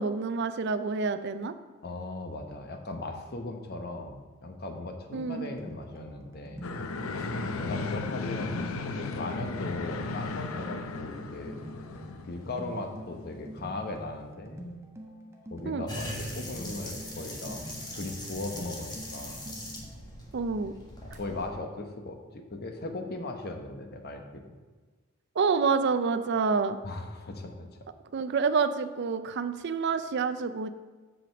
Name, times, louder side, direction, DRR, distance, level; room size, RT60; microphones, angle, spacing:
voice 1, 0.0-1.5 5.1-5.5 15.7-15.9 20.3-20.7 25.4-26.8 28.1-30.7, right 5 dB, 55° right, 10 dB, 0.4 m, -28 dB
voice 2, 1.8-6.7 7.1-11.6 12.3-14.6 15.5-17.6 17.9-19.4 21.1-24.6 26.8-27.7, left 2 dB, 50° left, 5 dB, 1.0 m, -38 dB
sound 1, 5.1-20.0, equal, 15° right, 1.0 m, -46 dB
sound 2, 6.6-13.7, left 3 dB, 80° left, 0.6 m, -36 dB
sound 3, 15.9-21.5, left 1 dB, 20° left, 1.6 m, -40 dB
7.8 x 5.0 x 7.0 m, 1.3 s
head